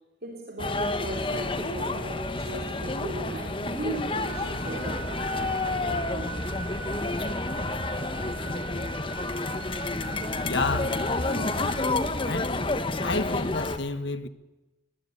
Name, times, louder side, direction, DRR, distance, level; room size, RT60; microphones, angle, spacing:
voice 1, 0.2-6.5 7.6-8.0, right 1 dB, 50° right, 3.3 m, -37 dB
sound 1, 0.6-13.8, left 2 dB, 25° left, 1.2 m, -29 dB
Harmonica, 4.2-11.8, right 4 dB, 15° right, 7.1 m, -41 dB
voice 2, 10.4-11.8 12.2-12.6 13.0-14.3, left 3 dB, 65° left, 1.3 m, -31 dB
20.0 x 19.5 x 9.9 m
head